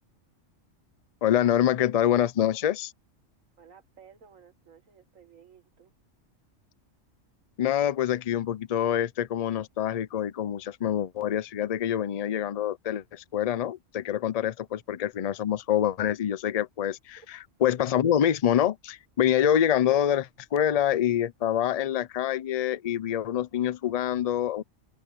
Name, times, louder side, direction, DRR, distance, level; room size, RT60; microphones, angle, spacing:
voice 1, 1.2-2.9 7.6-24.6, left 10 dB, 50° left, 0.4 m, -26 dB
voice 2, 3.6-5.9 17.2-17.3, right 7 dB, 90° right, 2.0 m, -55 dB
omnidirectional pair, 1.3 m